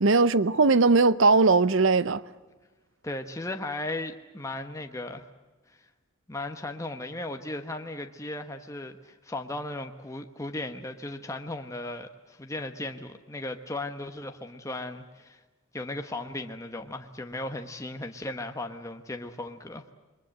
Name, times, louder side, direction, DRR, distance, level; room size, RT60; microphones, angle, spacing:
voice 1, 0.0-2.2, right 3 dB, 65° right, 0.7 m, -20 dB
voice 2, 3.0-5.3 5.7-5.9 6.3-15.4 15.7-19.8, left 2 dB, 15° left, 1.1 m, -36 dB
28.5 x 22.5 x 7.9 m
head